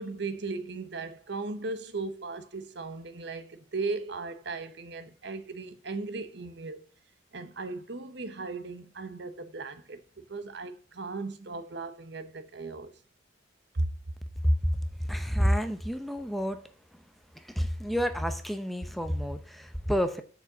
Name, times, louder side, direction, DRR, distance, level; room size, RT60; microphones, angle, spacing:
voice 1, 0.0-6.8 7.3-12.9 13.7-13.9, right 3 dB, 65° right, 0.9 m, -37 dB
voice 2, 15.1-16.6 17.6-20.2, equal, ahead, 0.7 m, -29 dB
6.7 x 5.0 x 6.7 m
head